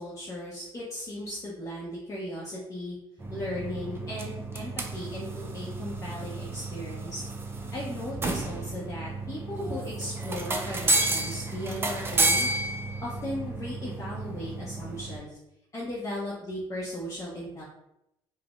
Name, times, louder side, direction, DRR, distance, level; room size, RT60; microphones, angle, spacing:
voice 1, 0.0-3.0 3.3-7.2 7.7-12.5 13.0-15.4 15.7-17.6, left 1 dB, 30° left, -6 dB, 0.6 m, -37 dB
sound 1, 3.2-15.2, right 2 dB, 25° right, 0.4 m, -31 dB
3.4 x 2.0 x 2.4 m, 0.85 s
cardioid pair, 105°, 10 cm